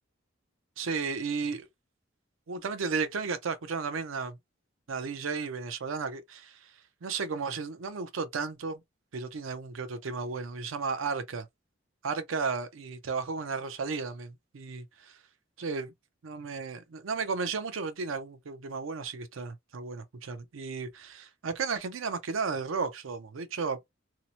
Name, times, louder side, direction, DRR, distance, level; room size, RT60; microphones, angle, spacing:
voice 1, 0.8-1.7 2.5-4.4 4.9-6.7 7.0-8.8 9.1-11.5 12.0-15.2 15.6-15.9 16.2-23.8, right 4 dB, 85° right, 0.5 m, -34 dB
2.8 x 2.0 x 2.8 m
head